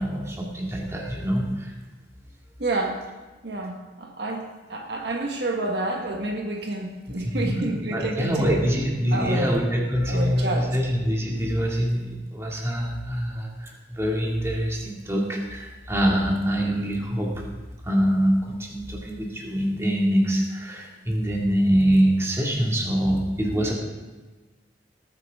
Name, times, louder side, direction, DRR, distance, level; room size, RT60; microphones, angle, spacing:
voice 1, 0.0-1.7 7.3-7.6 7.9-17.4 17.8-23.7, equal, 15° right, -2 dB, 2.4 m, -24 dB
voice 2, 2.6-3.0 3.4-8.6 9.1-9.5 10.1-10.8, right 2 dB, 65° right, 1 dB, 1.6 m, -29 dB
19.0 x 9.7 x 3.7 m, 1.3 s
head